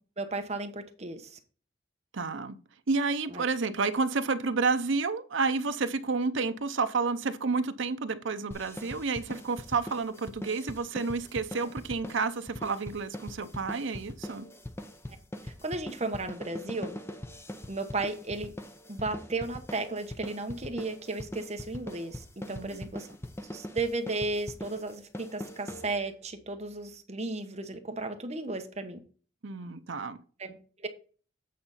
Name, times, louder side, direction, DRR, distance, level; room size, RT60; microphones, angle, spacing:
voice 1, 0.2-1.4 3.3-3.4 15.4-17.0 17.7-18.5 18.9-23.1 23.4-29.0 30.4-30.9, right 2 dB, 35° right, 1.0 m, -34 dB
voice 2, 2.1-2.6 2.9-14.4 22.5-22.9 29.4-30.2, right 4 dB, 70° right, 0.7 m, -30 dB
sound 1, 8.5-26.3, left 1 dB, 10° left, 0.6 m, -42 dB
8.5 x 3.9 x 5.6 m
head